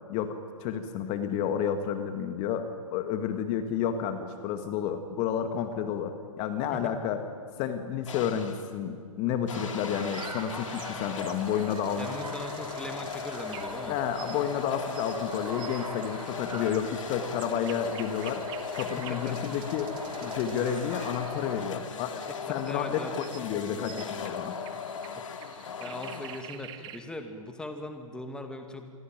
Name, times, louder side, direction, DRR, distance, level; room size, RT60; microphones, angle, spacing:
voice 1, 0.1-2.7 2.9-7.2 7.6-12.1 13.9-18.4 18.7-19.9 20.2-24.6, left 8 dB, 30° left, 8 dB, 1.9 m, -31 dB
sound 1, 8.1-8.7 9.5-26.8, left 6 dB, 60° left, 2.6 m, -38 dB
sound 2, 9.5-21.6, right 2 dB, 85° right, 6.7 m, -42 dB
sound 3, 10.1-27.0, right 11 dB, 25° right, 2.1 m, -49 dB
voice 2, 12.0-14.0 19.1-19.4 22.3-23.1 23.5-24.0 24.7-24.9 25.2-25.3 25.5-28.9, left 1 dB, 5° left, 6 dB, 2.2 m, -40 dB
27.5 x 22.5 x 9.2 m, 2.1 s
figure-of-eight pair, 125°, 18 cm